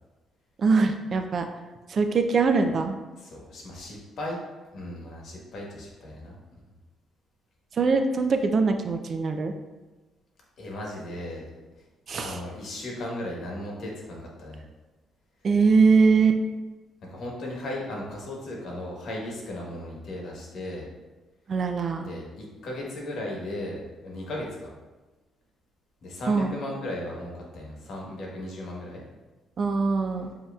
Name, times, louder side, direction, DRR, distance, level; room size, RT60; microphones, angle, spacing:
voice 1, 0.6-1.5 1.9-3.0 7.8-9.5 12.1-12.3 15.4-16.4 21.5-22.1 26.3-26.5 29.6-30.3, right 4 dB, 50° right, 6 dB, 0.4 m, -22 dB
voice 2, 3.1-4.4 4.7-6.4 10.6-11.5 12.2-14.6 17.1-20.8 22.0-24.7 26.0-29.0, left 1 dB, 65° left, -2 dB, 1.3 m, -36 dB
7.4 x 2.8 x 2.4 m, 1.2 s
cardioid pair, 90°, 0 cm